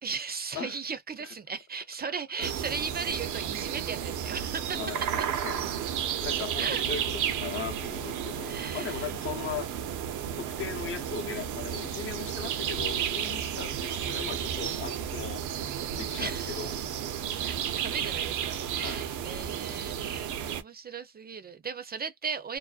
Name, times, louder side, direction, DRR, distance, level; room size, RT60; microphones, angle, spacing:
voice 1, 0.0-5.3 6.6-6.8 8.4-9.5 16.2-16.9 17.4-22.6, right 5 dB, 30° right, 0.5 m, -37 dB
sound 1, 2.4-20.6, right 9 dB, 80° right, 0.6 m, -32 dB
voice 2, 4.7-5.6 6.1-9.7 10.4-15.4 15.9-16.7 18.8-19.0, left 6 dB, 45° left, 0.6 m, -38 dB
2.6 x 2.1 x 2.3 m
cardioid pair, 90°, 30 cm